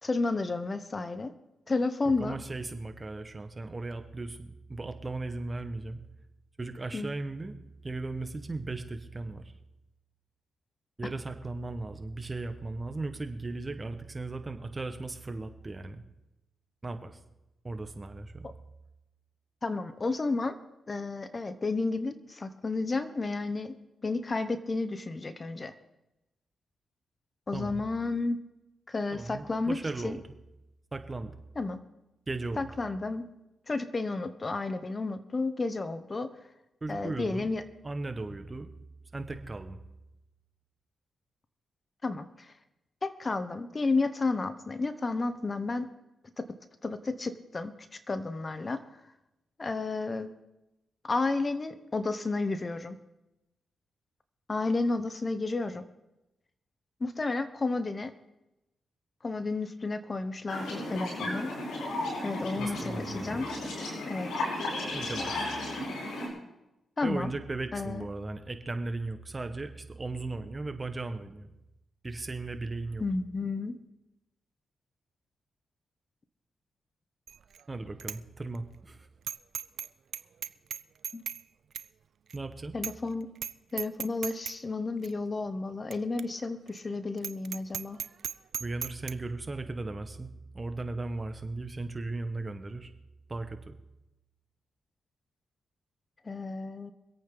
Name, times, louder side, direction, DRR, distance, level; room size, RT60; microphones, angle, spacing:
voice 1, 0.0-1.3 1.7-2.4 6.9-7.1 19.6-20.5 20.9-23.8 24.0-25.7 27.5-28.4 28.9-30.2 31.6-31.8 32.6-33.3 33.7-36.3 36.9-37.6 42.0-42.5 43.0-45.9 46.4-46.5 46.8-48.8 49.6-50.3 51.0-53.0 54.5-55.8 57.0-58.1 59.2-61.5 62.2-63.5 64.0-64.3 67.0-67.3 67.7-68.1 73.0-73.8 81.1-81.2 82.7-83.3 83.7-88.0 96.2-96.9, left 3 dB, 35° left, 11 dB, 1.1 m, -32 dB
voice 2, 2.2-6.0 6.6-7.6 7.8-9.5 11.0-16.0 16.8-17.2 17.6-18.5 27.5-27.8 29.1-30.2 30.9-31.3 32.3-32.7 36.8-37.5 37.8-38.7 39.1-39.8 62.6-63.5 64.9-65.4 67.0-71.5 72.0-73.0 77.7-79.1 82.3-82.7 88.6-92.9 93.3-93.7, right 2 dB, 30° right, 8 dB, 1.6 m, -37 dB
sound 1, 60.5-66.3, left 2 dB, 85° left, 5.3 m, -34 dB
Bicycle bell, 77.3-77.6 78.0-78.2 78.5-78.6 79.3-79.9 80.1-81.4 81.7-81.9 82.3-82.4 82.8-83.1 83.3-83.5 83.8-84.5 85.0-85.1 85.9-86.0 86.2-86.3 86.7-86.8 87.2-89.1, right 8 dB, 70° right, 0.5 m, -36 dB
25.0 x 8.7 x 4.1 m, 0.94 s
cardioid pair, 65°, 0 cm